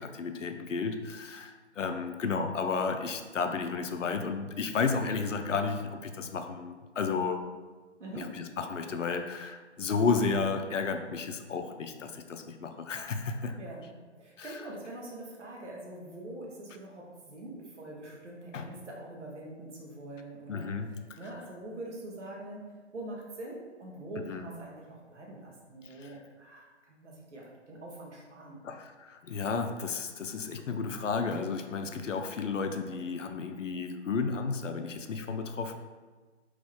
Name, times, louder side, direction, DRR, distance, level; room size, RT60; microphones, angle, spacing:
voice 1, 0.0-7.5 8.2-13.6 14.4-14.5 18.5-18.7 20.5-21.2 24.3-24.5 26.0-26.1 28.6-35.8, left 5 dB, 85° left, 7 dB, 0.6 m, -32 dB
voice 2, 8.0-8.5 13.6-28.6, right 1 dB, 70° right, -2 dB, 1.3 m, -44 dB
3.8 x 3.1 x 3.5 m, 1.3 s
figure-of-eight pair, 150°, 36 cm